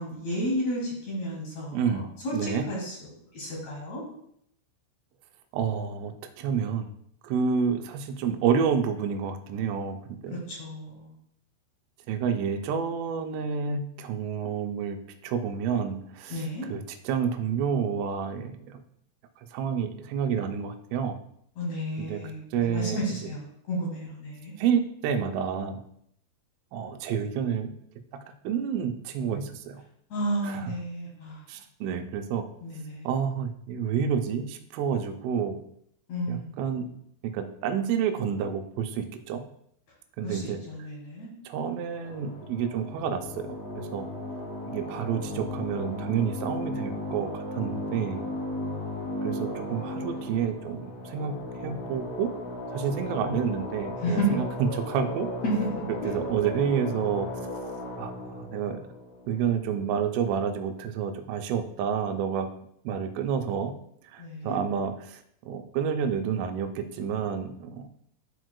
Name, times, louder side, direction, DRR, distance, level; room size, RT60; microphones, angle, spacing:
voice 1, 0.0-4.0 10.3-11.1 16.3-16.7 21.6-24.5 30.1-31.4 32.6-33.1 36.1-36.5 40.2-41.3 54.0-54.4 55.4-56.3 64.2-64.6, equal, 65° left, -4 dB, 1.7 m, -32 dB
voice 2, 1.7-2.0 2.3-2.6 5.5-6.9 7.2-10.4 12.1-15.0 15.2-18.8 19.5-21.2 22.0-22.2 22.5-23.3 24.6-25.8 26.7-27.7 28.4-29.8 30.4-30.7 31.5-32.4 33.1-35.6 36.3-36.9 37.2-39.4 40.2-40.6 41.5-43.5 43.8-44.1 44.7-48.3 49.2-52.3 52.7-54.5 54.7-55.3 56.1-57.3 58.0-58.8 59.3-62.5 62.8-63.7 64.0-67.8, right 7 dB, 85° right, 6 dB, 3.3 m, -29 dB
sound 1, 41.9-60.0, left 1 dB, 50° left, 4.1 m, -36 dB
12.5 x 4.6 x 2.2 m, 0.70 s
omnidirectional pair, 5.7 m